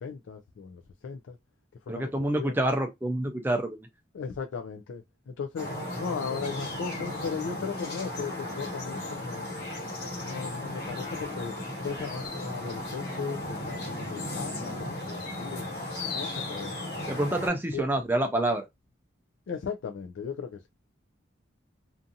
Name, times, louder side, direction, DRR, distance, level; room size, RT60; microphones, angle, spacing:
voice 1, 0.0-1.4 1.8-2.1 2.4-2.5 4.1-9.5 10.2-15.7 16.1-16.8 17.7-17.8 19.5-20.7, left 5 dB, 80° left, 0.3 m, -37 dB
voice 2, 1.9-3.9 17.1-18.7, right 1 dB, 10° right, 0.4 m, -27 dB
sound 1, 5.6-17.5, left 1 dB, 50° left, 1.3 m, -35 dB
2.5 x 2.5 x 2.6 m
head